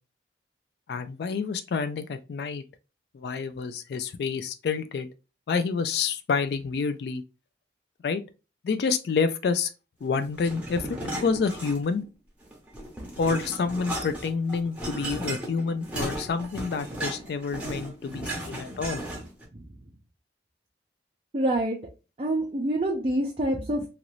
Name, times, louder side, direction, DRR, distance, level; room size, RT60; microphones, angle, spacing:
voice 1, 0.9-2.6 3.1-5.1 5.5-7.2 8.0-8.2 8.6-9.7 10.0-10.9 11.2-12.0 13.2-19.0, left 5 dB, 65° left, 0.3 m, -28 dB
sound 1, 10.4-12.1 12.4-19.4, right 1 dB, 10° right, 0.8 m, -35 dB
voice 2, 21.3-21.8 22.2-23.9, right 1 dB, 35° right, 0.5 m, -26 dB
2.9 x 2.5 x 3.0 m
head